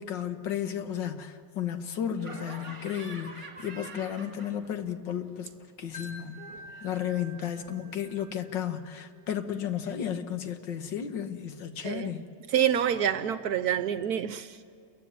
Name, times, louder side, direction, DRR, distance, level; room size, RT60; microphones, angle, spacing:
voice 1, 0.0-5.5 5.8-6.5 6.8-12.3, left 9 dB, 80° left, 2.0 m, -33 dB
Laughter, 2.2-4.9 5.2-8.1, right 2 dB, 25° right, 2.3 m, -47 dB
Wind chime, 5.9-9.0, left 1 dB, 10° left, 6.6 m, -48 dB
voice 2, 12.5-14.6, right 9 dB, 65° right, 1.2 m, -27 dB
29.0 x 15.0 x 9.5 m
omnidirectional pair, 2.0 m